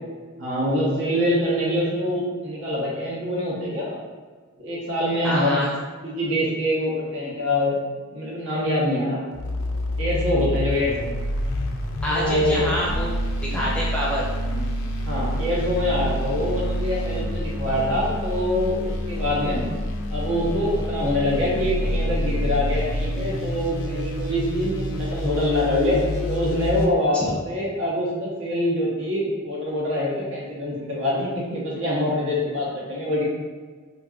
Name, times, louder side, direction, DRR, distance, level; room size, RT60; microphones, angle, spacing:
voice 1, 0.4-4.0 4.6-5.6 6.0-7.8 8.1-9.2 10.0-11.2 12.1-12.7 14.5-14.6 15.1-19.6 20.1-26.0 26.3-33.2, left 1 dB, 60° right, -6 dB, 1.1 m, -25 dB
voice 2, 5.2-5.7 12.0-13.2 13.4-14.3, equal, 5° left, -7 dB, 0.6 m, -26 dB
sound 1, 9.3-26.9, left 1 dB, 65° left, 0.4 m, -27 dB
4.4 x 2.7 x 2.4 m, 1.5 s
head